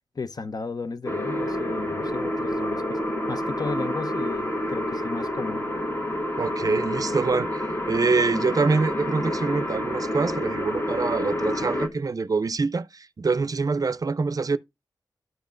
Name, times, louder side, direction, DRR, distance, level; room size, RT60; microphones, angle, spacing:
voice 1, 0.1-3.0 3.3-5.7, left 4 dB, 50° left, 0.7 m, -34 dB
sound 1, 1.1-11.9, left 1 dB, 30° left, 1.6 m, -28 dB
voice 2, 6.4-14.6, right 4 dB, 45° right, 0.5 m, -25 dB
12.5 x 5.2 x 2.5 m
cardioid pair, 55°, 8 cm